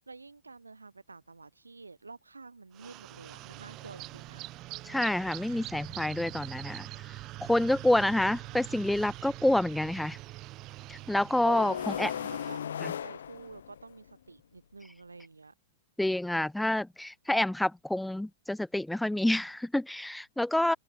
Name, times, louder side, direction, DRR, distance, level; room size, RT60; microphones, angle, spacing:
voice 1, 0.1-4.4 11.7-15.5, right 3 dB, 90° right, 2.3 m, -49 dB
sound 1, 2.7-12.6, right 18 dB, 40° right, 1.6 m, -44 dB
voice 2, 4.8-7.1 7.4-10.2 10.9-12.1 12.8-12.9 16.0-20.8, left 1 dB, 5° left, 0.4 m, -28 dB
sound 2, 11.4-14.1, left 9 dB, 70° left, 0.7 m, -36 dB
open air
figure-of-eight pair, 100°, 0 cm